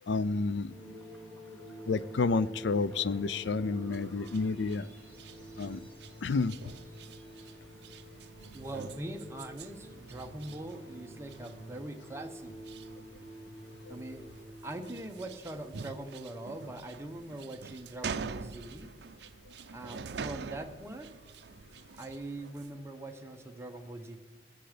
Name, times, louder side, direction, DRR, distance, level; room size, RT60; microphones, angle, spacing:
voice 1, 0.1-0.7 1.9-4.9 5.6-5.8 6.2-6.5, left 4 dB, 90° left, 17 dB, 0.4 m, -30 dB
sound 1, 0.7-16.0, equal, 10° left, 2.0 m, -48 dB
sound 2, 3.9-22.8, right 5 dB, 75° right, 0.5 m, -46 dB
voice 2, 8.5-12.7 13.9-14.3 14.6-18.9 19.7-21.1 22.0-24.2, right 1 dB, 15° right, 4 dB, 1.0 m, -42 dB
21.0 x 8.0 x 5.0 m, 1.3 s
head